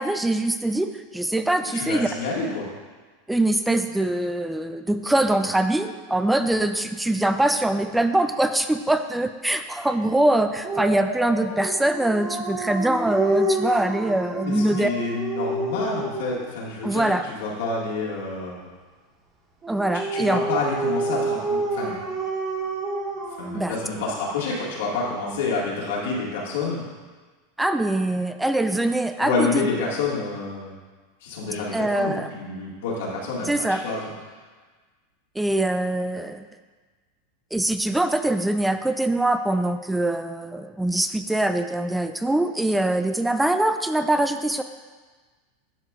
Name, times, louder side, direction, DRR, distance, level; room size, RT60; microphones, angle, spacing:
voice 1, 0.0-2.1 3.3-14.9 16.8-17.3 19.7-20.4 23.5-23.8 27.6-29.7 31.7-32.3 33.5-33.8 35.4-36.5 37.5-44.6, right 1 dB, 5° right, 9 dB, 0.4 m, -23 dB
voice 2, 1.7-2.6 14.4-18.6 20.1-22.0 23.4-26.8 29.2-30.7 31.2-34.1, left 3 dB, 80° left, -4 dB, 1.9 m, -28 dB
Dog, 10.6-16.5 19.6-24.2, right 2 dB, 30° right, 1.5 m, -29 dB
11.0 x 4.9 x 2.4 m, 1.4 s
hypercardioid pair, 115°, 0 cm